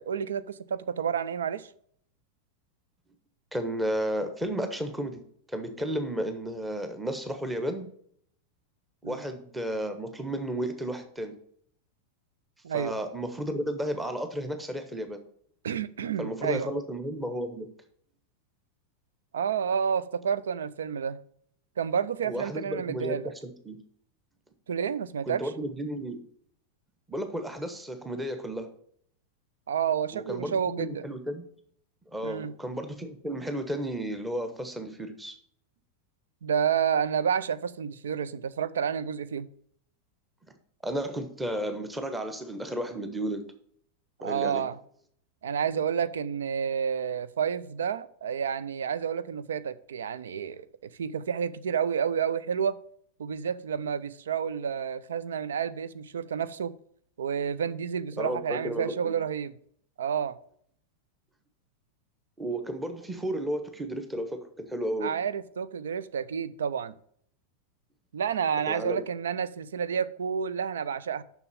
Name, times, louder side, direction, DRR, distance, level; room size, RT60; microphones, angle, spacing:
voice 1, 0.0-1.7 9.0-9.2 12.6-13.0 15.6-16.7 19.3-21.2 21.8-23.3 24.7-25.5 29.7-31.1 32.2-32.5 36.4-39.5 44.2-44.8 45.4-50.7 51.0-52.8 53.2-56.7 57.2-59.5 60.0-60.4 65.0-66.9 68.1-71.2, right 7 dB, 65° right, 0.5 m, -30 dB
voice 2, 3.5-5.2 5.5-7.9 9.0-11.4 12.7-15.2 16.2-17.7 22.2-23.8 25.3-26.2 27.1-28.7 30.1-31.4 32.1-35.3 40.8-43.4 44.2-44.6 58.2-59.1 62.4-65.1 68.7-69.0, equal, 10° right, 1.2 m, -33 dB
6.8 x 6.2 x 7.0 m
figure-of-eight pair, 90°, 0 cm